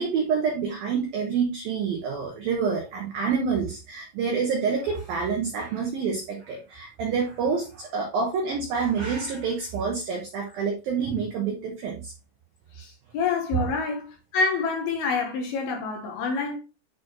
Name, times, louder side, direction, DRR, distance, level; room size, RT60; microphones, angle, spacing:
voice 1, 0.0-12.1 13.5-13.7, right 5 dB, 90° right, 2.0 m, -27 dB
voice 2, 12.8-16.6, left 4 dB, 70° left, 2.4 m, -27 dB
10.5 x 4.3 x 3.1 m
omnidirectional pair, 6.0 m